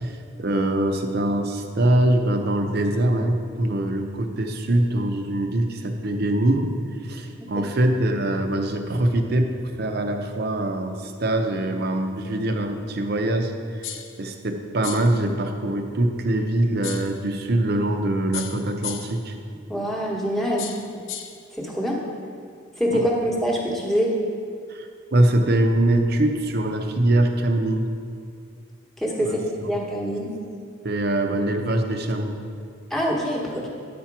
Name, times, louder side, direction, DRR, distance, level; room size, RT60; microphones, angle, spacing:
voice 1, 0.0-6.7 7.0-9.5 9.8-13.9 14.2-19.4 22.9-23.0 24.7-27.9 29.2-29.4 29.6-29.7 30.8-32.4, right 1 dB, 50° right, 5 dB, 0.7 m, -23 dB
sound 1, 13.8-14.2 14.8-15.2 16.8-17.2 18.3-19.2 20.6-21.4, left 9 dB, 80° left, 0.5 m, -35 dB
voice 2, 19.7-20.7 21.6-22.0 22.8-24.1 29.0-30.3 32.9-33.7, equal, ahead, -3 dB, 1.1 m, -25 dB
9.4 x 4.3 x 5.9 m, 2.3 s
head